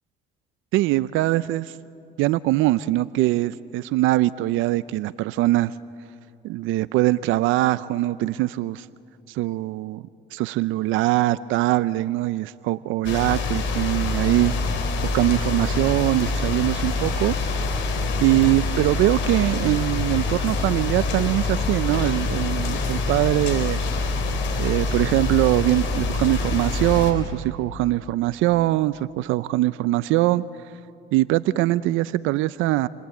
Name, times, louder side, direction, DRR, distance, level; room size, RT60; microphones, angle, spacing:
voice 1, 0.7-1.7 2.2-5.7 6.4-8.9 9.3-10.0 10.3-14.5 15.1-17.3 18.2-23.8 24.6-30.4 31.1-32.9, right 16 dB, 75° right, 16 dB, 0.6 m, -22 dB
sound 1, 13.0-27.1, left 3 dB, 65° left, 4.5 m, -25 dB
29.5 x 24.0 x 8.4 m, 2.5 s
supercardioid pair, 90°, 21 cm